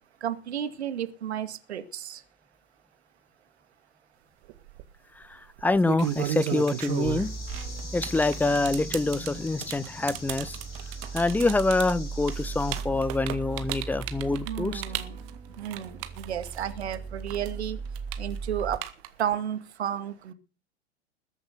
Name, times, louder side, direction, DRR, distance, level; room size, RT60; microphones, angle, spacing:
voice 1, 0.2-2.2 14.5-15.3 15.6-17.8 18.2-18.8 19.2-20.3, right 10 dB, 65° right, 2.1 m, -32 dB
sound 1, 4.5-4.8 5.6-16.9 17.3-19.3, right 14 dB, 45° right, 1.9 m, -34 dB
voice 2, 5.2-7.3 7.9-10.6 11.1-14.8, left 3 dB, 5° left, 0.7 m, -26 dB
sound 2, 6.0-12.8, left 2 dB, 85° left, 3.6 m, -45 dB
sound 3, 7.1-18.8, right 4 dB, 10° right, 1.4 m, -38 dB
20.5 x 8.1 x 6.7 m
figure-of-eight pair, 90°, 35 cm